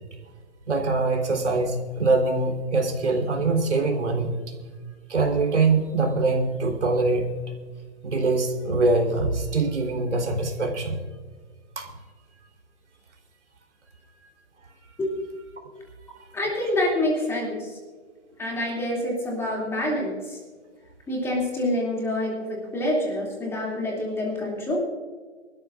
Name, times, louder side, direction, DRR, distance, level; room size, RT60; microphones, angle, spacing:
voice 1, 0.7-4.5 5.1-7.3 8.0-11.0 11.8-11.9, right 3 dB, 80° right, 2 dB, 3.8 m, -23 dB
voice 2, 16.3-17.8 18.4-20.4 21.1-24.8, left 1 dB, 5° left, -2 dB, 2.6 m, -27 dB
24.5 x 13.0 x 2.5 m, 1.5 s
hypercardioid pair, 150°, 35 cm